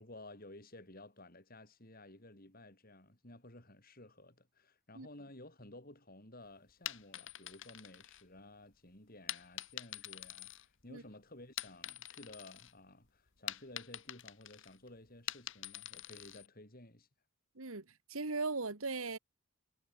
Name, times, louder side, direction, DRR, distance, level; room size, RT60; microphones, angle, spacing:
voice 1, 0.0-17.1, left 1 dB, 40° left, 4.9 m, -55 dB
sound 1, 6.7-8.6 9.3-11.1 11.4-12.7 13.0-16.5, left 12 dB, 60° left, 1.9 m, -45 dB
voice 2, 17.6-19.2, right 3 dB, 70° right, 1.9 m, -38 dB
head